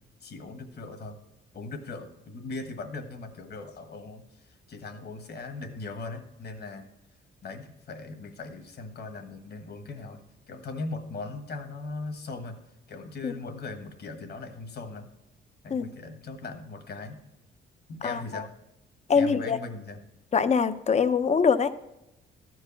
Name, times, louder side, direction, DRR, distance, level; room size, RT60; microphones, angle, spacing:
voice 1, 0.2-1.2 1.5-6.9 7.4-10.2 10.5-12.6 12.9-15.1 15.6-17.2 17.9-18.5 19.1-20.0, left 3 dB, 55° left, 7 dB, 1.5 m, -39 dB
voice 2, 19.1-19.6 20.3-21.7, left 6 dB, 35° left, 12 dB, 0.7 m, -23 dB
13.5 x 4.7 x 7.0 m, 0.91 s
cardioid pair, 90°, 20 cm